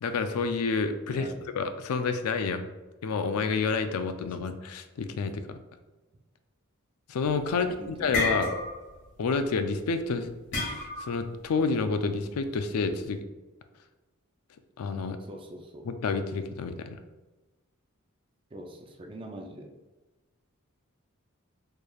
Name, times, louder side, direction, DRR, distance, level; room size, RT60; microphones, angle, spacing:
voice 1, 0.0-2.6 3.0-5.6 7.1-8.5 9.2-10.3 10.6-13.2 14.8-15.2 15.8-17.0, left 4 dB, 85° left, 9 dB, 0.4 m, -29 dB
sound 1, 7.2-7.6 7.9-9.0 9.2-9.5 10.5-11.2, left 3 dB, 55° left, 1.4 m, -30 dB
voice 2, 7.5-8.2 15.3-15.9 18.5-19.7, right 1 dB, 25° right, 3 dB, 0.4 m, -43 dB
4.4 x 3.2 x 2.3 m, 1.2 s
head